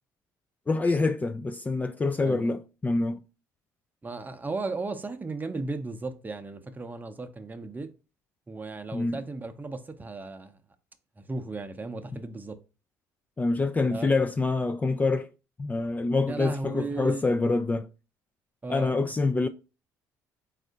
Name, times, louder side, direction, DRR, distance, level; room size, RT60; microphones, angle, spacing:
voice 1, 0.7-3.2 8.9-9.2 13.4-15.3 15.6-17.9 18.7-19.5, left 3 dB, 20° left, 0.3 m, -26 dB
voice 2, 2.2-2.6 4.0-7.9 8.5-10.6 11.2-12.6 13.9-14.1 16.3-17.3 18.6-19.1, right 3 dB, 20° right, 0.6 m, -35 dB
4.2 x 2.5 x 3.8 m
hypercardioid pair, 65°, 8 cm